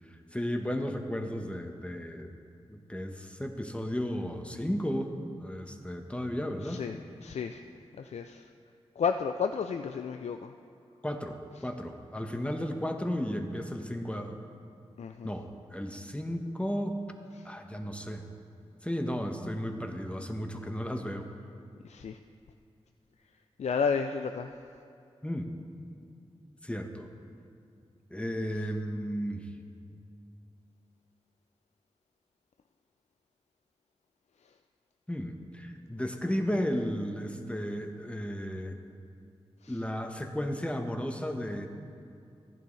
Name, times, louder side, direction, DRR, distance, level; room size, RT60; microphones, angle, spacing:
voice 1, 0.1-2.3 2.7-6.8 11.0-11.4 11.6-14.4 15.2-17.0 17.4-18.2 18.8-21.3 25.2-25.5 26.6-27.1 28.1-29.5 35.1-38.8 39.7-41.7, equal, 10° left, 4 dB, 1.0 m, -34 dB
voice 2, 7.2-7.6 8.0-8.4 9.0-10.5 15.0-15.3 21.9-22.2 23.6-24.5, left 6 dB, 75° left, 7 dB, 0.4 m, -31 dB
14.5 x 10.5 x 3.2 m, 2.5 s
cardioid pair, 50°, 11 cm